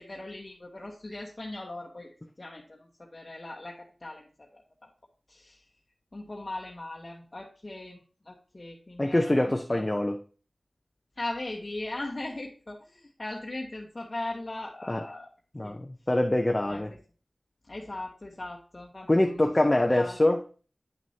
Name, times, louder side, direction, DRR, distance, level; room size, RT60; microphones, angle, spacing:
voice 1, 0.0-4.6 5.3-5.6 6.1-9.9 11.2-15.3 15.6-15.7 16.7-16.8 17.7-19.5 19.9-20.2, left 2 dB, 40° left, -2 dB, 1.1 m, -39 dB
voice 2, 9.0-10.2 14.9-15.0 15.5-16.9 19.1-20.4, left 1 dB, 25° left, 4 dB, 0.6 m, -24 dB
9.1 x 6.2 x 2.8 m, 0.38 s
wide cardioid pair, 65°, 0 cm